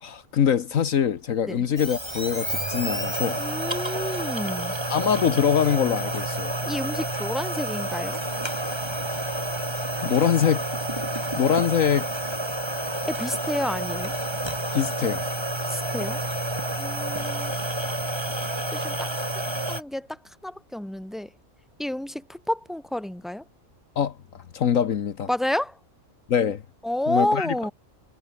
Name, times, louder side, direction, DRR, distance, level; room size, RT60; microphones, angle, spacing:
voice 1, 0.0-3.4 4.9-6.5 10.0-10.6 11.4-12.1 14.7-15.2 24.0-24.2 24.5-25.3 26.3-26.6 27.1-27.5, left 8 dB, 70° left, 1.4 m, -23 dB
sound 1, 1.8-19.8, right 1 dB, 20° right, 3.7 m, -29 dB
voice 2, 3.4-4.8 6.7-8.2 13.0-14.1 15.6-16.2 16.8-17.5 18.7-19.1 19.7-21.3 21.8-23.4 25.3-25.8 26.8-27.7, left 1 dB, ahead, 2.4 m, -30 dB
omnidirectional pair, 1.5 m